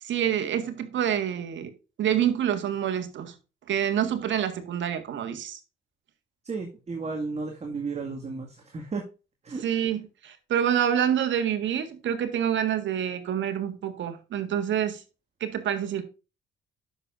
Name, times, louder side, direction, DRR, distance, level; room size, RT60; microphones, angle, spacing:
voice 1, 0.0-1.7 2.0-3.3 3.7-5.6 9.6-15.0 15.4-16.0, right 9 dB, 70° right, 1.7 m, -27 dB
voice 2, 6.5-8.5 8.7-9.0 9.4-9.6, right 4 dB, 35° right, 2.0 m, -33 dB
9.8 x 6.9 x 2.5 m
cardioid pair, 90°, 20 cm